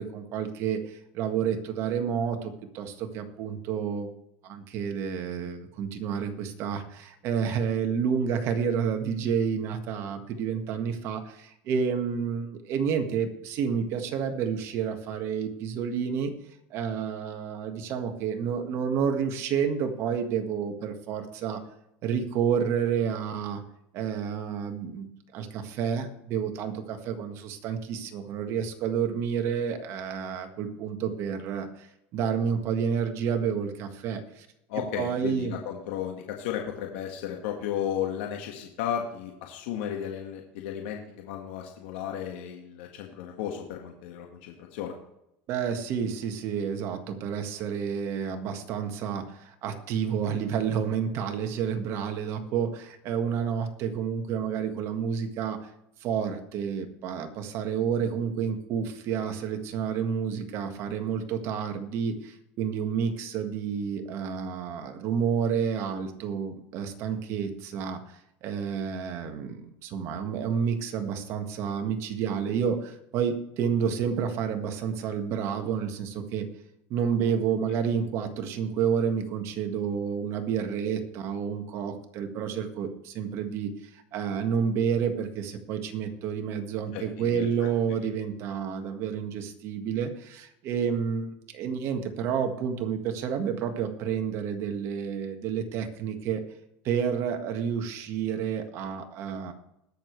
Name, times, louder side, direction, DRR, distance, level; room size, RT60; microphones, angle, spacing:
voice 1, 0.0-4.1 4.4-16.3 16.7-21.6 22.0-23.6 23.9-31.9 32.1-34.5 35.0-35.5 45.5-55.6 56.0-76.5 76.9-96.4 96.8-99.5, right 7 dB, 55° right, 6 dB, 1.7 m, -30 dB
voice 2, 34.7-44.9 86.9-88.0, left 9 dB, 80° left, 1 dB, 1.7 m, -34 dB
20.5 x 6.8 x 3.3 m, 0.82 s
supercardioid pair, 115°, 5 cm